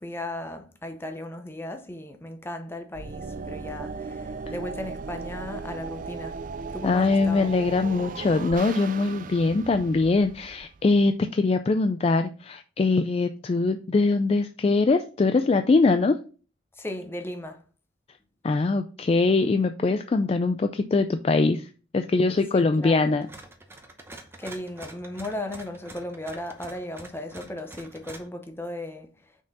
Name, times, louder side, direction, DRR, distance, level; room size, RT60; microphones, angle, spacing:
voice 1, 0.0-6.4 6.7-7.5 16.7-17.6 22.5-23.0 24.4-29.4, left 1 dB, 15° left, 0.8 m, -36 dB
sound 1, 2.9-11.1, right 4 dB, 45° right, 0.4 m, -37 dB
voice 2, 6.8-16.1 18.4-21.7 21.9-23.3, left 3 dB, 35° left, 0.3 m, -22 dB
sound 2, 23.2-28.3, right 2 dB, 15° right, 0.8 m, -46 dB
6.0 x 4.4 x 4.1 m
head